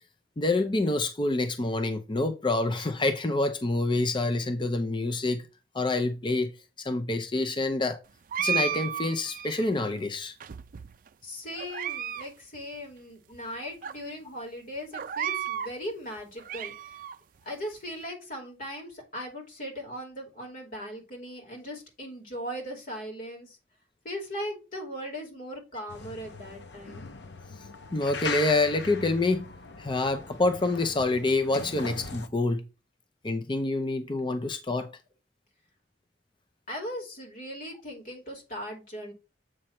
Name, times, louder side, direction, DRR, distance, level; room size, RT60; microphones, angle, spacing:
voice 1, 0.4-5.5 5.7-8.0 8.4-10.3 27.9-29.5 29.8-32.6 33.2-34.9, left 2 dB, 25° left, 0.6 m, -27 dB
sound 1, 8.3-9.7 10.4-11.1 11.6-12.3 12.5-12.6 13.3-13.4 13.8-13.9 14.9-15.7 16.2-17.2, right 8 dB, 50° right, 0.4 m, -33 dB
voice 2, 11.2-17.0 17.4-23.6 24.0-27.0 36.7-39.1, equal, 50° left, 2.7 m, -39 dB
sound 2, 25.9-32.3, left 4 dB, 75° left, 0.9 m, -40 dB
7.7 x 3.2 x 5.7 m
head